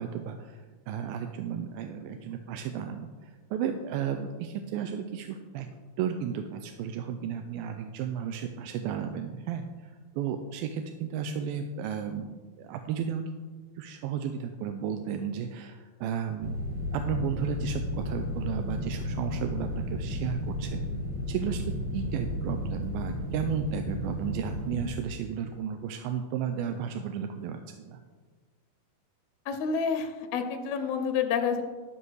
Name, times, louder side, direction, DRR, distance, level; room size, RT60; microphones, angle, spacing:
voice 1, 0.0-5.7 6.0-13.2 13.8-16.6 16.9-20.8 21.3-28.0, right 8 dB, 85° right, 6 dB, 2.4 m, -33 dB
sound 1, 16.4-24.9, left 1 dB, 65° right, 2.9 m, -33 dB
voice 2, 29.5-31.6, left 6 dB, 85° left, 6 dB, 2.8 m, -29 dB
13.0 x 5.5 x 6.3 m, 1.4 s
omnidirectional pair, 4.2 m